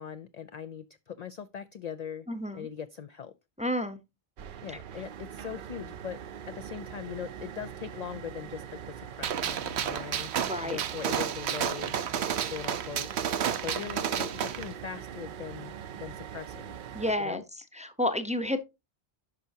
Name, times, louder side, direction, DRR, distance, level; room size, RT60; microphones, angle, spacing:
voice 1, 0.0-2.3 2.5-3.3 4.6-6.2 6.5-11.9 12.4-13.1 13.6-16.8 17.2-17.4, left 7 dB, 55° left, 0.5 m, -40 dB
voice 2, 2.3-2.7 3.6-4.0 10.5-10.8 16.9-17.4 17.7-18.6, left 1 dB, 10° right, 0.7 m, -30 dB
sound 1, 4.4-17.1, right 8 dB, 60° right, 0.7 m, -42 dB
Gunshot gunfire, 9.2-14.7, right 8 dB, 85° right, 1.0 m, -31 dB
10.5 x 5.7 x 2.7 m
omnidirectional pair, 1.1 m